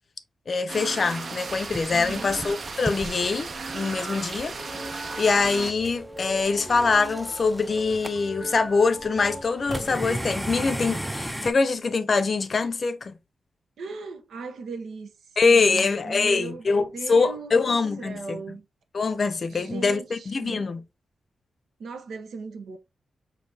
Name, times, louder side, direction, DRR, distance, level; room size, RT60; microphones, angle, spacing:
voice 1, 0.5-4.5 5.2-13.1 15.4-18.4 18.9-20.8, left 4 dB, 45° left, 0.6 m, -24 dB
sound 1, 0.7-5.7, right 4 dB, 55° right, 0.7 m, -35 dB
sound 2, 1.5-11.5, right 1 dB, 5° right, 0.4 m, -37 dB
voice 2, 1.9-2.3 13.8-15.1 15.5-18.6 19.5-20.6 21.8-22.8, right 4 dB, 85° right, 0.8 m, -38 dB
sound 3, 4.5-10.1, equal, 25° right, 1.3 m, -40 dB
6.5 x 2.7 x 2.7 m
wide cardioid pair, 100°, 0 cm